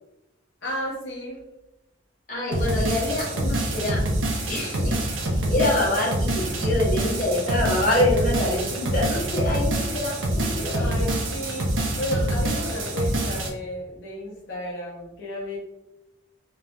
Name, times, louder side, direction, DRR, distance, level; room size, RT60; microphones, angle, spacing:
voice 1, 0.6-1.4 10.7-15.6, equal, 65° left, -6 dB, 0.9 m, -32 dB
voice 2, 2.3-4.0 4.5-5.2 5.4-10.9, left 1 dB, 45° left, -5 dB, 1.3 m, -25 dB
sound 1, 2.5-13.5, right 1 dB, 90° right, 0.9 m, -26 dB
3.3 x 2.8 x 3.5 m, 0.94 s
head